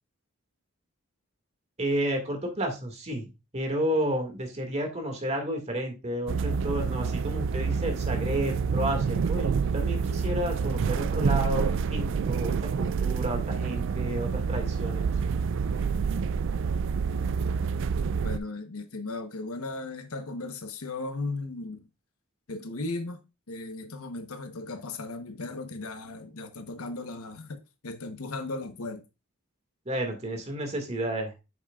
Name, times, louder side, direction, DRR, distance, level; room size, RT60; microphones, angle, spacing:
voice 1, 1.8-15.1 29.9-31.3, right 1 dB, 30° right, 1.9 m, -31 dB
sound 1, 6.3-18.4, right 5 dB, 60° right, 0.4 m, -28 dB
voice 2, 18.2-21.9 22.5-29.0, left 3 dB, 90° left, 1.0 m, -36 dB
9.0 x 6.2 x 2.4 m
head